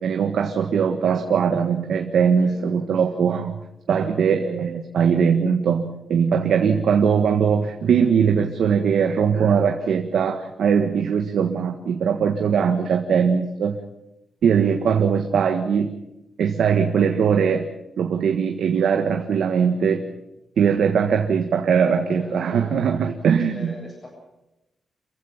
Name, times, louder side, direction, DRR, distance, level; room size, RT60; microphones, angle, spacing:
voice 1, 0.0-3.5 3.9-13.8 14.4-15.9 16.4-17.7 18.0-20.0 20.6-23.7, right 7 dB, 85° right, 4 dB, 1.6 m, -20 dB
voice 2, 2.4-2.7 3.1-3.2 22.1-24.1, left 1 dB, 25° left, -1 dB, 7.9 m, -42 dB
28.0 x 15.5 x 7.2 m, 0.92 s
wide cardioid pair, 180°, 0 cm